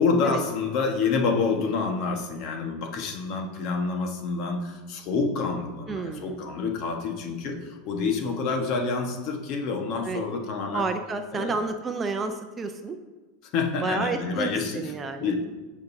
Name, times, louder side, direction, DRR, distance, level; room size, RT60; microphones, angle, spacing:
voice 1, 0.0-10.8 11.3-11.5 13.5-14.8 15.2-15.6, left 4 dB, 50° left, 2 dB, 1.4 m, -27 dB
voice 2, 5.9-6.4 10.0-10.2 10.7-13.0 13.8-15.3, right 4 dB, 20° right, 7 dB, 0.6 m, -30 dB
15.0 x 5.2 x 2.8 m, 1.2 s
supercardioid pair, 135°, 0 cm